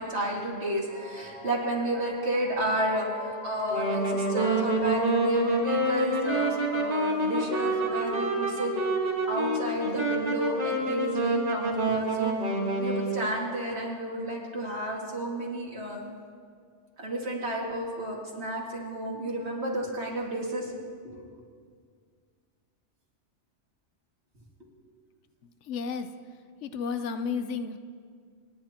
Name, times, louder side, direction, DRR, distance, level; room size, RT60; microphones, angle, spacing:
voice 1, 0.0-8.7 9.3-12.3 12.8-16.0 17.0-20.7 21.0-21.2, right 1 dB, 65° right, -3 dB, 2.5 m, -31 dB
sound 1, 0.9-9.0, left 1 dB, 60° left, 3.3 m, -43 dB
Wind instrument woodwind instrument, 3.6-13.3, right 2 dB, 35° right, 1.6 m, -27 dB
voice 2, 25.6-26.2 26.6-27.8, left 5 dB, 80° left, 10 dB, 1.0 m, -32 dB
27.5 x 10.5 x 2.9 m, 2.1 s
omnidirectional pair, 1.2 m